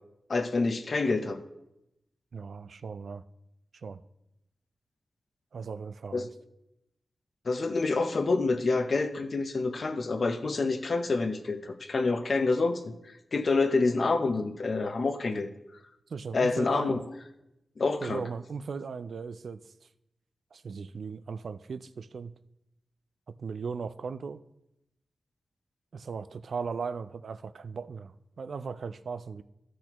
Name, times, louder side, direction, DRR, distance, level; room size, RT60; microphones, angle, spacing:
voice 1, 0.3-1.4 6.1-6.3 7.5-12.9 13.3-15.5 16.3-17.0 17.8-18.3, left 3 dB, 50° left, 0.7 m, -27 dB
voice 2, 2.3-3.2 3.8-4.0 5.5-6.3 16.1-17.0 18.0-19.6 20.5-22.4 23.4-24.4 25.9-29.4, right 5 dB, 70° right, 0.3 m, -37 dB
15.5 x 6.2 x 3.0 m
wide cardioid pair, 140°, 0 cm